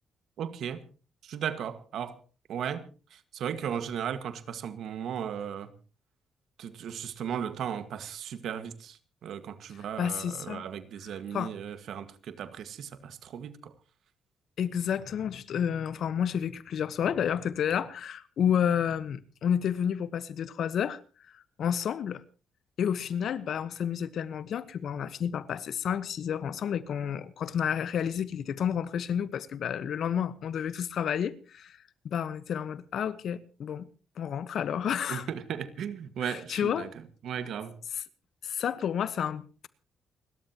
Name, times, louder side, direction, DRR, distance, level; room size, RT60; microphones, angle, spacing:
voice 1, 0.4-0.9 1.2-2.2 2.5-5.7 6.6-9.0 9.2-13.7 35.1-36.9 37.2-37.8, right 8 dB, 70° right, 1.7 m, -36 dB
voice 2, 10.0-10.6 11.3-11.5 14.6-21.0 21.6-22.2 22.8-31.8 32.0-33.9 34.2-35.3 36.2-36.9 37.9-38.0 38.4-39.7, left 8 dB, 65° left, 1.2 m, -30 dB
29.0 x 13.0 x 3.0 m
cardioid pair, 90°, 0 cm